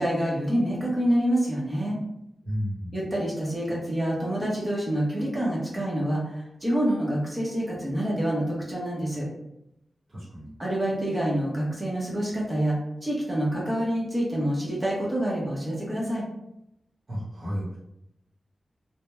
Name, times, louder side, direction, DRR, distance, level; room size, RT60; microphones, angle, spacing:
voice 1, 0.0-2.0 2.9-9.3 10.6-12.8 13.0-16.2, right 1 dB, 20° right, -4 dB, 0.7 m, -27 dB
voice 2, 2.4-2.9 10.1-10.5 17.1-17.8, equal, 50° right, -10 dB, 0.9 m, -32 dB
2.9 x 2.1 x 2.2 m, 0.83 s
wide cardioid pair, 165°, 0 cm